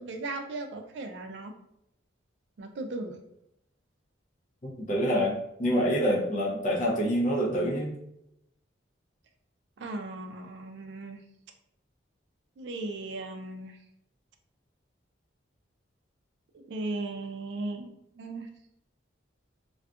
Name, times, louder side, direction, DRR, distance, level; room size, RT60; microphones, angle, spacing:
voice 1, 0.0-1.5 2.6-3.2 9.8-11.2 12.6-13.8 16.5-18.5, right 2 dB, 65° right, 6 dB, 0.3 m, -37 dB
voice 2, 4.6-7.9, equal, 40° left, -3 dB, 0.5 m, -26 dB
2.5 x 2.3 x 2.3 m, 0.79 s
head